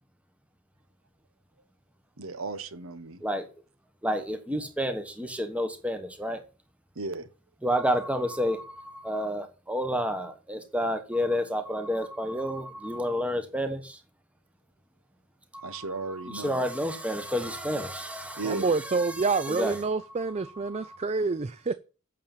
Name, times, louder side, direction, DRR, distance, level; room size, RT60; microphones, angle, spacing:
voice 1, 2.2-3.2 7.0-7.3 15.6-16.6 18.4-18.7, right 3 dB, 75° right, 1.1 m, -35 dB
voice 2, 4.0-6.4 7.6-14.0 15.5-19.1 19.3-19.8 20.7-20.9, equal, 5° right, 1.2 m, -30 dB
voice 3, 18.4-21.7, right 4 dB, 30° right, 0.4 m, -28 dB
8.5 x 6.6 x 7.2 m
head